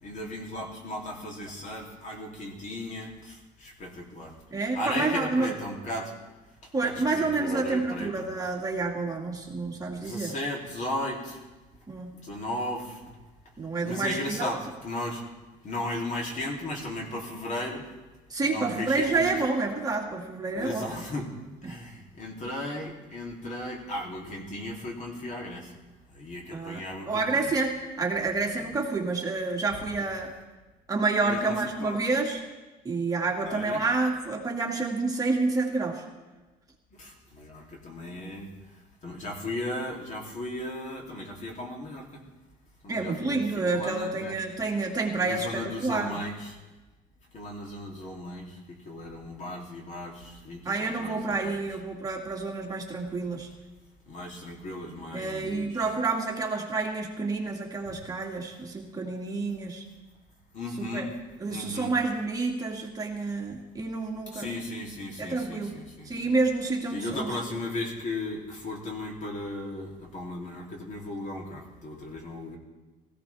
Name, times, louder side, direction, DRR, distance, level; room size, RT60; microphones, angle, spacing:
voice 1, 0.0-4.3 4.7-6.1 6.8-8.3 9.9-11.4 12.2-13.0 13.8-15.2 15.6-17.9 18.4-19.3 20.5-21.3 21.6-25.7 26.1-27.5 28.6-28.7 31.2-32.0 33.5-33.8 37.0-38.5 39.0-42.2 42.8-44.3 45.2-46.6 47.3-51.5 54.1-55.8 60.5-61.1 61.5-61.9 64.3-66.3 66.9-72.6, left 1 dB, 45° left, 0 dB, 3.1 m, -36 dB
voice 2, 4.5-5.5 6.7-10.3 11.9-12.1 13.6-14.5 18.3-20.9 21.6-21.8 26.5-30.3 30.9-32.4 32.8-36.0 42.9-46.2 50.6-53.5 55.1-59.8 60.8-61.1 61.4-64.5 65.2-65.8 66.1-67.4, right 3 dB, 20° right, -1 dB, 2.2 m, -29 dB
17.5 x 15.5 x 3.5 m, 1.2 s
cardioid pair, 110°, 17 cm